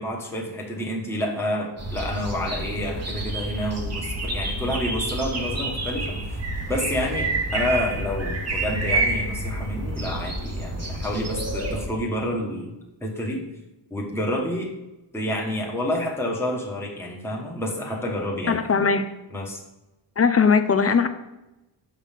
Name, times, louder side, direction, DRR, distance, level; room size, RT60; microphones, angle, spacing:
voice 1, 0.0-6.4 6.7-12.7 13.0-13.4 13.9-14.7 15.1-18.6 19.3-19.6, left 1 dB, 5° left, -2 dB, 1.2 m, -29 dB
sound 1, 1.8-11.9, right 2 dB, 30° right, 1.0 m, -28 dB
voice 2, 18.5-19.1 20.2-21.1, left 5 dB, 30° left, 10 dB, 0.4 m, -19 dB
5.8 x 3.7 x 5.6 m, 0.98 s
wide cardioid pair, 85°, 48 cm